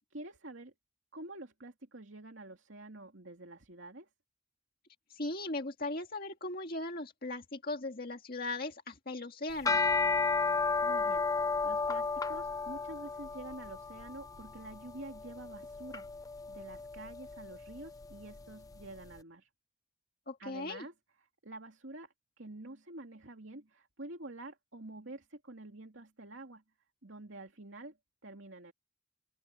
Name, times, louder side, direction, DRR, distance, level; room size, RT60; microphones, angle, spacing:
voice 1, 0.1-0.7 1.1-4.1 10.8-16.1 16.5-19.5 20.4-20.9 21.4-26.6 27.0-28.0 28.2-28.7, right 2 dB, 70° right, 2.6 m, -48 dB
voice 2, 5.1-9.8 20.3-20.8, left 2 dB, 45° left, 1.9 m, -38 dB
sound 1, 9.5-18.8, left 4 dB, 15° left, 0.4 m, -33 dB
open air
head